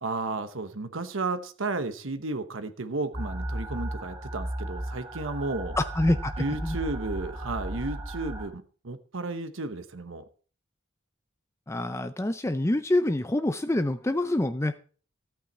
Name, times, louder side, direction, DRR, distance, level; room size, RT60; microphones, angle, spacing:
voice 1, 0.0-5.8 6.4-10.2, right 3 dB, 80° right, 10 dB, 1.1 m, -33 dB
sound 1, 3.1-8.5, right 1 dB, 25° right, 3.1 m, -35 dB
voice 2, 5.8-6.3 6.6-6.8 11.7-14.8, left 1 dB, 15° left, 10 dB, 0.6 m, -26 dB
14.0 x 9.0 x 4.3 m, 0.39 s
head